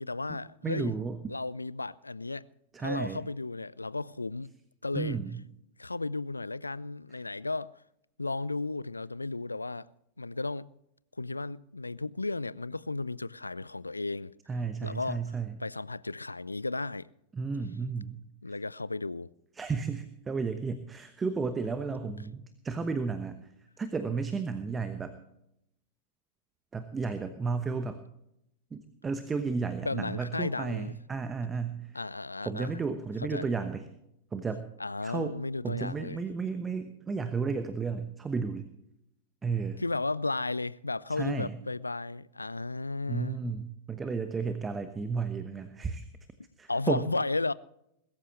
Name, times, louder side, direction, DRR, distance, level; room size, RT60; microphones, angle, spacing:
voice 1, 0.0-0.9 1.3-2.5 2.8-4.5 4.8-5.2 5.8-7.7 8.2-9.9 10.2-10.7 11.2-14.3 14.8-15.2 15.6-17.1 18.4-19.3 22.0-22.2 29.8-30.9 31.9-32.7 33.3-33.5 34.8-36.2 39.8-43.4 46.7-47.5, left 3 dB, 80° left, 0.4 m, -34 dB
voice 2, 0.6-1.2 2.7-3.2 4.9-5.4 14.5-15.5 17.3-18.2 19.6-23.4 23.8-25.2 26.7-28.0 28.7-32.0 32.4-33.9 34.3-34.7 35.0-35.4 35.6-38.7 39.4-39.8 41.1-41.5 43.1-46.0 46.6-47.0, right 4 dB, 15° right, 1.1 m, -33 dB
21.5 x 14.0 x 3.2 m
figure-of-eight pair, 90°, 0 cm